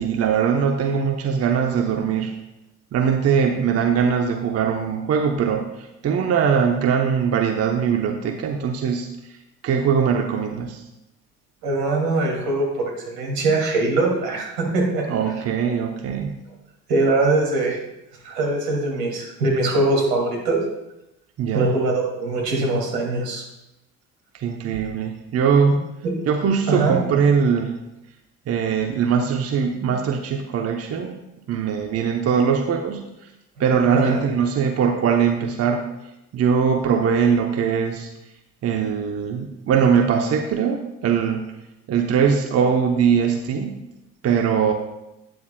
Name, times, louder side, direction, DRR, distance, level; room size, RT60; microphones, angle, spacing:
voice 1, 0.0-2.3 2.9-9.1 9.6-10.8 15.1-16.4 21.4-21.7 24.3-25.8 26.3-27.7 28.5-31.2 31.5-33.0 33.6-35.8 36.3-38.1 38.6-41.5 41.9-43.8 44.2-44.7, right 7 dB, 30° right, 4 dB, 0.9 m, -21 dB
voice 2, 11.6-12.8 13.1-15.0 16.9-17.8 18.2-20.6 21.5-23.4 26.7-26.9 33.9-34.2, right 2 dB, 70° right, -1 dB, 2.6 m, -22 dB
12.5 x 9.6 x 2.3 m, 0.91 s
figure-of-eight pair, 60°, 49 cm